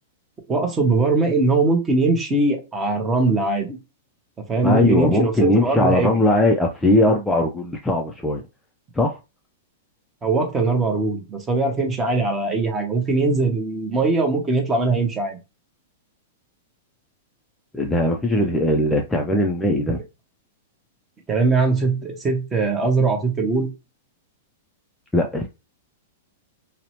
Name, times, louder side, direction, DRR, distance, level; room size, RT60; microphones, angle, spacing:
voice 1, 0.5-3.8 4.5-6.1 10.2-15.4 21.3-23.7, right 3 dB, 20° right, 0.7 m, -21 dB
voice 2, 4.6-8.4 8.9-9.2 17.7-20.0 25.1-25.5, left 1 dB, 5° left, 0.3 m, -19 dB
2.7 x 2.0 x 2.9 m
hypercardioid pair, 140°, 0 cm